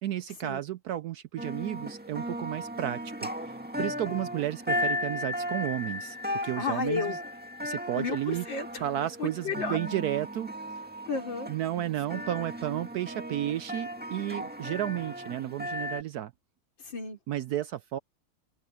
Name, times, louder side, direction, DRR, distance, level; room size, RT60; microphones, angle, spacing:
voice 1, 0.0-7.2 7.6-8.4 8.8-10.5 11.5-16.3 17.3-18.0, right 12 dB, 70° right, 0.9 m, -32 dB
sound 1, 1.4-16.0, left 1 dB, 5° right, 1.7 m, -36 dB
voice 2, 6.6-7.2 8.0-8.8 9.2-9.8 11.1-11.5 12.1-12.2 16.8-17.2, left 5 dB, 80° left, 4.2 m, -33 dB
omnidirectional pair, 2.0 m